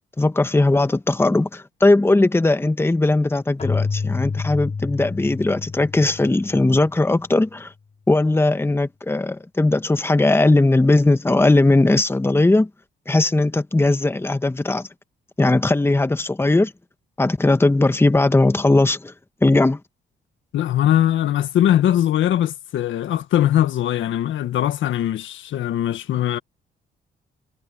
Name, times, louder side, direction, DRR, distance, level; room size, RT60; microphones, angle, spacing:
voice 1, 0.2-7.7 8.1-12.7 13.1-14.9 15.4-16.7 17.2-19.1 19.4-19.8, left 2 dB, 10° left, 1.3 m, -18 dB
Keyboard (musical), 3.6-7.1, left 4 dB, 35° left, 2.7 m, -28 dB
voice 2, 20.5-26.4, left 11 dB, 75° left, 1.7 m, -20 dB
cardioid pair, 90°, 20 cm